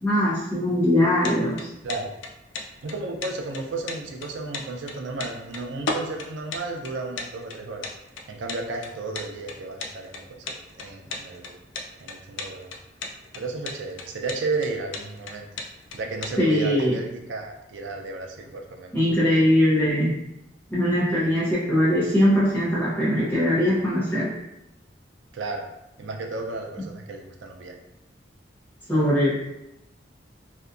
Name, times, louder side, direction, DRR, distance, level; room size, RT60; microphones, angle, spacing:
voice 1, 0.0-1.7 16.4-16.9 18.9-20.2 20.7-24.3 28.9-29.4, left 1 dB, 10° left, -10 dB, 0.7 m, -21 dB
sound 1, 1.0-16.4, left 3 dB, 85° left, 0.4 m, -35 dB
voice 2, 2.8-7.8 8.3-11.6 12.0-12.7 13.4-15.5 15.9-18.9 21.1-21.3 25.3-25.7 26.0-27.8, right 3 dB, 85° right, 3 dB, 0.4 m, -33 dB
2.6 x 2.2 x 2.4 m, 0.87 s
head